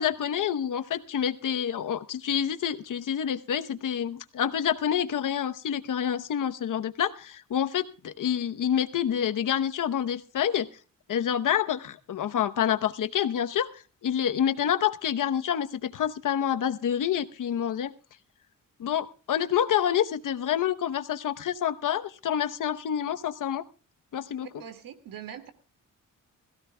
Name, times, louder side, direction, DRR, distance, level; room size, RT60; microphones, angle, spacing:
voice 1, 0.0-10.7 11.1-17.9 18.8-23.6 24.1-24.6, left 9 dB, 65° left, 11 dB, 0.9 m, -28 dB
voice 2, 24.5-25.5, right 9 dB, 90° right, 9 dB, 2.1 m, -42 dB
21.0 x 15.5 x 2.2 m, 0.35 s
wide cardioid pair, 125°, 33 cm